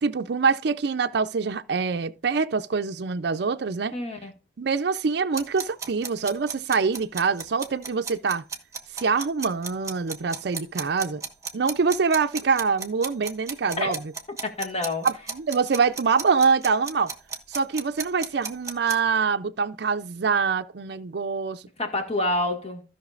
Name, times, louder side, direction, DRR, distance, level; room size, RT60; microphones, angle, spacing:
voice 1, 0.0-3.9 4.6-8.4 8.9-11.2 11.5-14.0 15.0-17.1 17.5-21.6, right 5 dB, 65° right, 0.5 m, -25 dB
voice 2, 3.9-4.3 13.8-14.0 14.4-15.1 21.8-22.8, left 2 dB, 35° left, 1.8 m, -27 dB
sound 1, 5.3-19.0, right 5 dB, 20° right, 1.2 m, -34 dB
16.0 x 5.8 x 2.5 m
head